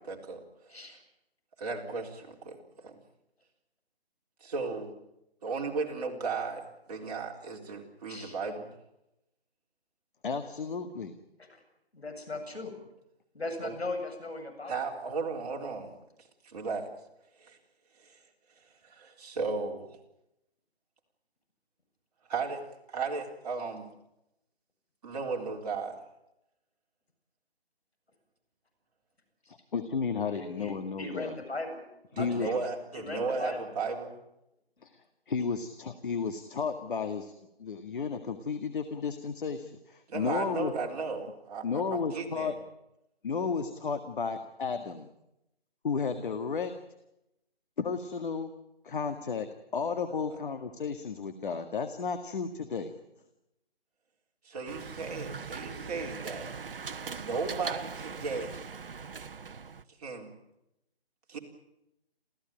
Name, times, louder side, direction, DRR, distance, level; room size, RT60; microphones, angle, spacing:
voice 1, 0.1-0.9 1.6-3.0 4.4-4.9 5.4-8.7 13.6-13.8 14.7-16.0 16.4-16.9 17.4-17.6 18.0-18.2 18.8-20.0 22.3-22.6 22.9-23.9 25.0-26.0 32.1-34.2 40.1-42.5 54.4-56.5 57.1-58.5 60.0-60.3 61.3-61.4, right 4 dB, 40° right, 1 dB, 3.9 m, -35 dB
voice 2, 10.2-11.2 29.7-31.4 32.1-32.5 34.8-34.9 35.3-37.3 37.6-40.7 41.6-42.5 43.2-45.1 45.8-46.7 47.8-48.5 48.8-49.5 49.7-52.9, left 5 dB, 55° left, 7 dB, 2.0 m, -33 dB
voice 3, 11.9-12.7 13.3-14.7 29.5-29.6 30.3-31.9 32.2-33.7, left 2 dB, 85° left, 5 dB, 7.9 m, -38 dB
sound 1, 54.7-59.8, right 5 dB, 60° right, 1.1 m, -41 dB
28.0 x 15.5 x 9.1 m, 0.87 s
figure-of-eight pair, 150°, 31 cm